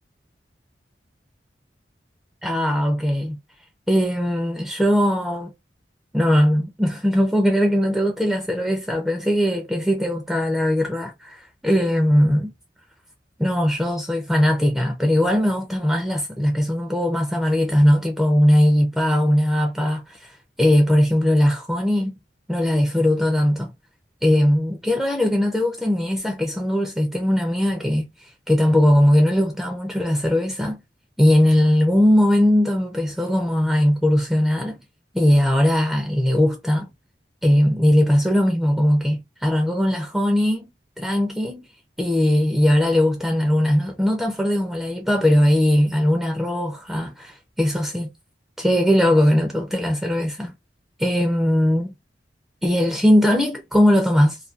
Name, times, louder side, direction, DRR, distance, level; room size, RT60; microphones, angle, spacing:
voice 1, 2.4-3.4 3.9-5.5 6.1-12.5 13.4-22.2 22.5-23.7 24.2-30.8 31.2-34.8 35.1-36.9 37.4-40.6 41.0-41.6 42.0-48.1 48.6-50.5 51.0-51.9 52.6-54.4, equal, ahead, 0.4 m, -19 dB
2.4 x 2.2 x 2.4 m
head